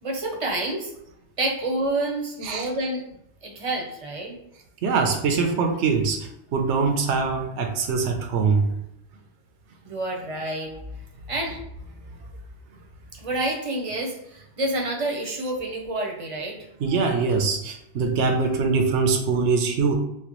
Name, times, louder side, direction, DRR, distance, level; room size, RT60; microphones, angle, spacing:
voice 1, 0.0-0.9 1.4-3.0 3.4-4.4 9.8-10.7 11.3-11.6 13.1-16.7, right 2 dB, 35° right, 0 dB, 0.6 m, -28 dB
voice 2, 4.8-8.7 16.8-20.0, right 4 dB, 75° right, 3 dB, 0.9 m, -23 dB
4.3 x 2.2 x 2.9 m, 0.82 s
omnidirectional pair, 1.2 m